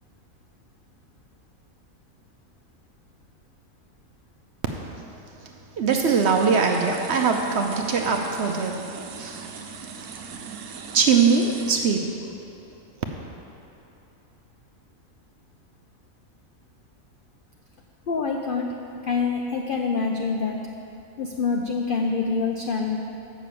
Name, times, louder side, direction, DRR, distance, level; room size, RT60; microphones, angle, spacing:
voice 1, 5.8-10.1 10.9-12.1, right 5 dB, 65° right, 3 dB, 0.7 m, -22 dB
sound 1, 5.9-11.8, right 6 dB, 80° right, 1.2 m, -40 dB
voice 2, 18.1-18.7 19.0-20.6 21.2-23.0, left 4 dB, 70° left, 2 dB, 0.5 m, -25 dB
7.0 x 6.0 x 7.5 m, 2.8 s
omnidirectional pair, 1.5 m